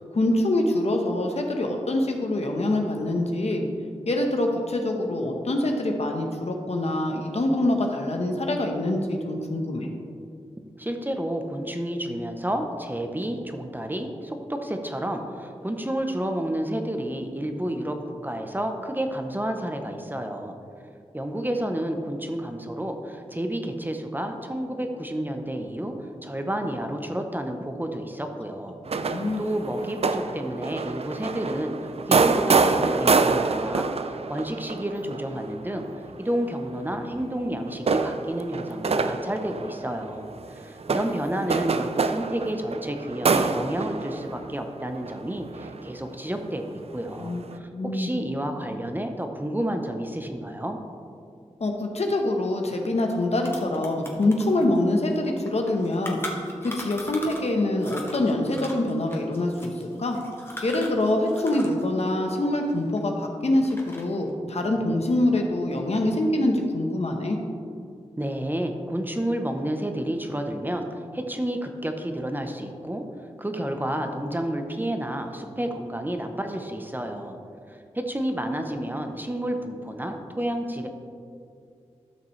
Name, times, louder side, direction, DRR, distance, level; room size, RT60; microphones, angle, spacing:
voice 1, 0.0-3.6 4.1-9.9 28.9-29.4 47.2-48.1 51.6-56.2 56.6-60.2 60.6-67.4, left 1 dB, 65° left, 2 dB, 1.1 m, -25 dB
voice 2, 10.8-20.5 21.1-25.9 26.2-28.8 29.1-31.8 32.1-35.8 36.2-50.8 68.2-70.9 71.1-73.0 73.4-77.4 77.7-80.9, right 1 dB, 15° right, 5 dB, 0.8 m, -30 dB
sound 1, 28.8-37.2 37.7-46.5 47.1-47.6, right 4 dB, 60° right, 0.5 m, -26 dB
sound 2, 52.8-52.9 53.1-57.5 57.8-61.8 62.1-63.2 63.6-64.2, left 1 dB, 20° left, 1.6 m, -39 dB
13.0 x 5.9 x 3.2 m, 2.4 s
cardioid pair, 50°, 12 cm